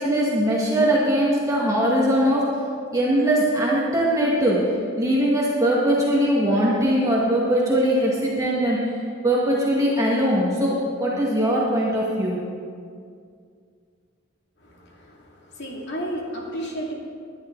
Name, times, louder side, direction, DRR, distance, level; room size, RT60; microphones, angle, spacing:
voice 1, 0.0-2.5 2.9-12.4, right 1 dB, 15° right, -5 dB, 1.9 m, -21 dB
voice 2, 14.6-16.9, right 1 dB, 60° left, -2 dB, 2.6 m, -33 dB
19.5 x 11.5 x 4.0 m, 2.2 s
head